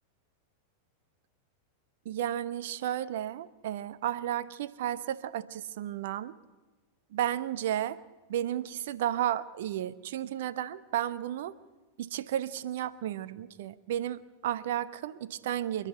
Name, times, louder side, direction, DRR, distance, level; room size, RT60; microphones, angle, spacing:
voice 1, 2.0-6.3 7.1-8.0 8.3-11.5 12.0-15.9, right 11 dB, 55° right, 15 dB, 0.8 m, -33 dB
28.5 x 11.0 x 9.1 m, 1.2 s
figure-of-eight pair, 90°, 0 cm